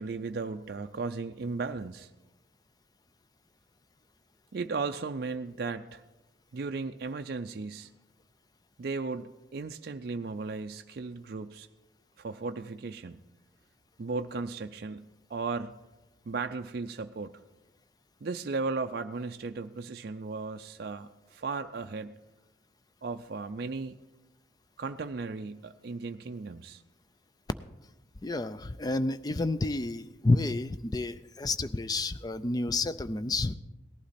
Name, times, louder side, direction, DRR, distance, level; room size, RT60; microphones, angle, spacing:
voice 1, 0.0-2.1 4.5-6.0 6.5-7.9 8.8-11.7 12.2-13.2 14.0-15.8 16.3-17.4 18.2-22.2 23.0-24.0 24.8-26.8, right 4 dB, 55° right, 6 dB, 0.4 m, -36 dB
voice 2, 28.2-33.5, left 2 dB, 20° left, 13 dB, 0.4 m, -30 dB
17.5 x 11.5 x 4.2 m, 1.0 s
head